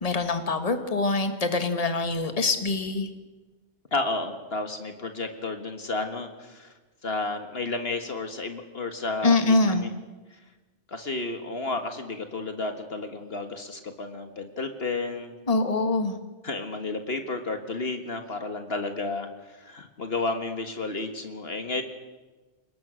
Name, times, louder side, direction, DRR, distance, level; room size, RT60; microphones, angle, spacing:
voice 1, 0.0-3.1 9.2-9.9 15.5-16.2, left 3 dB, 30° left, 7 dB, 1.7 m, -24 dB
voice 2, 3.9-6.7 7.0-9.9 10.3-10.4 10.9-15.3 16.4-21.8, left 3 dB, 55° left, 6 dB, 1.7 m, -32 dB
29.0 x 19.5 x 6.3 m, 1.2 s
omnidirectional pair, 1.2 m